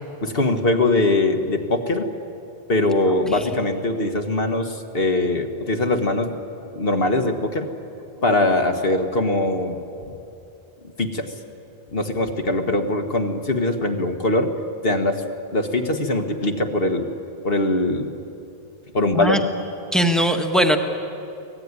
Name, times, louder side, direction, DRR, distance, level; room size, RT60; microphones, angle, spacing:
voice 1, 0.2-2.1 2.7-6.4 6.7-7.7 8.2-10.1 11.0-11.3 11.9-14.5 14.8-15.2 15.5-17.1 17.4-18.2 18.9-19.4, left 2 dB, 65° left, 6 dB, 1.7 m, -22 dB
voice 2, 19.9-20.8, equal, ahead, 4 dB, 1.6 m, -19 dB
25.0 x 18.0 x 9.7 m, 2.7 s
omnidirectional pair, 1.0 m